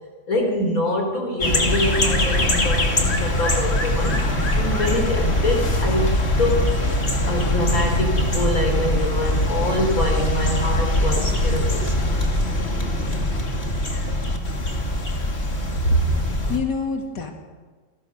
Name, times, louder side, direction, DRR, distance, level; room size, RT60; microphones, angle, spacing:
voice 1, 0.3-6.7 7.3-12.1, left 1 dB, 50° left, 2 dB, 4.2 m, -25 dB
sound 1, 1.4-16.6, left 1 dB, 35° left, 3.0 m, -22 dB
voice 2, 15.7-16.1 16.5-17.3, equal, 70° left, 3 dB, 2.9 m, -23 dB
29.0 x 19.5 x 6.6 m, 1.4 s
omnidirectional pair, 1.9 m